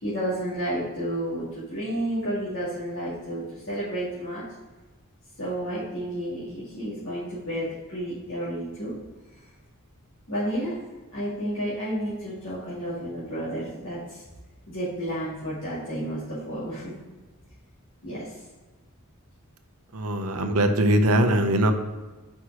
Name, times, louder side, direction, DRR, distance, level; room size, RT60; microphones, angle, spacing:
voice 1, 0.0-4.4 5.4-9.0 10.3-10.8 11.1-14.2 14.7-17.0 18.0-18.3, right 1 dB, 60° left, -11 dB, 2.3 m, -31 dB
voice 2, 19.9-21.7, right 1 dB, 85° right, 7 dB, 0.8 m, -21 dB
5.4 x 4.7 x 6.1 m, 1.2 s
head